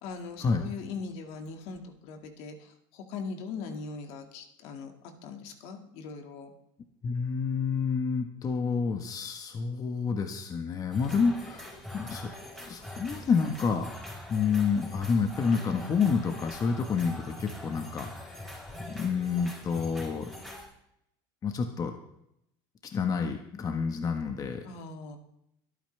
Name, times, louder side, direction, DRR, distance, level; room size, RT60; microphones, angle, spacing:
voice 1, 0.0-4.9 5.2-6.5 24.6-25.2, left 4 dB, 65° left, 4 dB, 2.1 m, -40 dB
voice 2, 7.0-11.7 11.9-13.9 14.3-18.5 18.8-20.3 21.4-22.0 22.9-24.6, left 5 dB, 30° left, 5 dB, 1.4 m, -29 dB
sound 1, 10.9-20.7, left 1 dB, 5° left, 4.7 m, -43 dB
24.0 x 9.1 x 3.4 m, 0.78 s
supercardioid pair, 110°, 11 cm